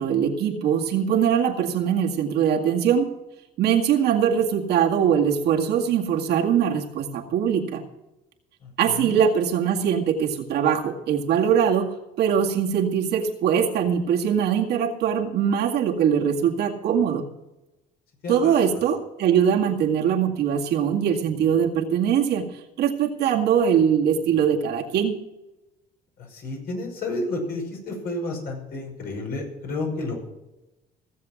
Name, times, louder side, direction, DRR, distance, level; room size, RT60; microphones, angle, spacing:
voice 1, 0.0-3.1 3.6-7.8 8.8-17.3 18.3-22.5 22.8-25.2, right 8 dB, 75° right, 0 dB, 2.1 m, -22 dB
voice 2, 8.6-9.2 18.2-18.5 26.2-30.2, left 2 dB, 60° left, 1 dB, 5.5 m, -31 dB
17.0 x 7.5 x 6.1 m, 0.97 s
cardioid pair, 110°, 17 cm